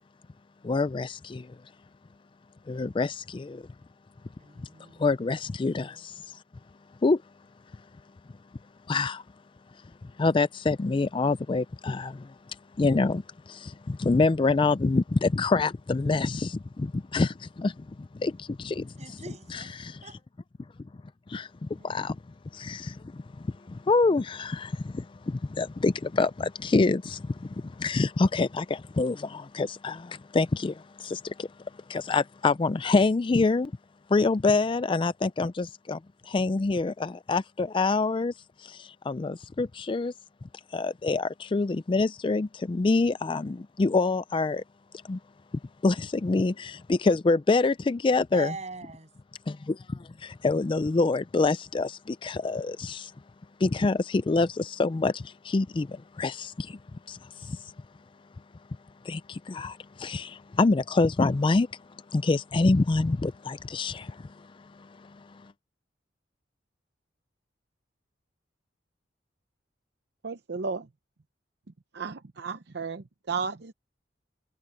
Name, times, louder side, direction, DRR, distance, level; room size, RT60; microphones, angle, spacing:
voice 1, 0.6-1.6 2.7-3.6 5.0-6.4 7.0-7.2 8.9-9.2 10.0-12.3 12.8-18.9 19.5-19.9 21.3-22.2 22.5-31.5 31.9-33.7 34.1-38.3 38.6-40.1 40.7-44.6 45.0-45.2 45.8-48.5 49.5-53.1 53.6-56.8 57.1-57.7 59.0-61.7 62.1-65.5, left 3 dB, 25° left, 0.4 m, -26 dB
voice 2, 4.4-5.1 18.8-20.2 21.8-22.0 48.3-49.1, right 3 dB, 40° right, 7.7 m, -43 dB
voice 3, 70.2-70.9 71.9-73.7, right 5 dB, 60° right, 0.7 m, -34 dB
head